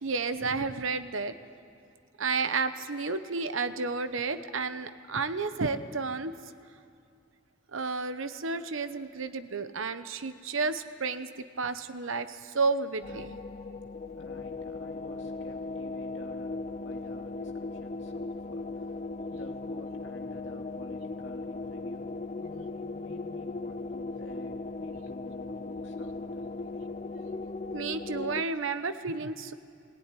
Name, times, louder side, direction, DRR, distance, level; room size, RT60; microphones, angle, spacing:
voice 1, 0.0-1.3 2.2-6.3 7.7-11.3 11.6-13.4 27.7-29.5, right 4 dB, 70° right, 11 dB, 0.9 m, -31 dB
sound 1, 13.0-28.4, left 3 dB, 35° left, 0.5 m, -38 dB
voice 2, 14.1-19.0 19.3-26.9, left 1 dB, 60° left, 1 dB, 2.4 m, -51 dB
19.5 x 18.0 x 9.9 m, 2.4 s
head